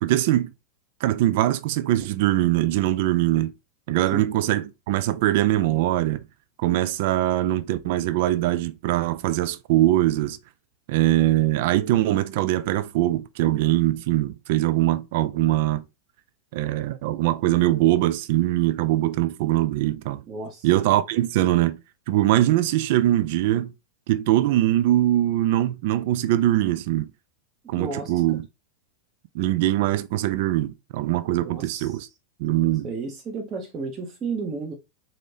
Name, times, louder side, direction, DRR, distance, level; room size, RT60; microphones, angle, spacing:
voice 1, 0.0-0.5 1.0-3.5 3.9-6.2 6.6-10.4 10.9-15.8 16.5-20.2 20.6-21.8 22.1-23.7 24.1-27.1 27.7-28.4 29.3-32.1 32.4-32.9, right 14 dB, 50° right, 0.3 m, -22 dB
voice 2, 20.3-20.7 27.8-28.1 31.4-32.1 32.8-34.7, right 4 dB, 30° right, 0.8 m, -33 dB
4.1 x 2.6 x 3.3 m
figure-of-eight pair, 90°, 0 cm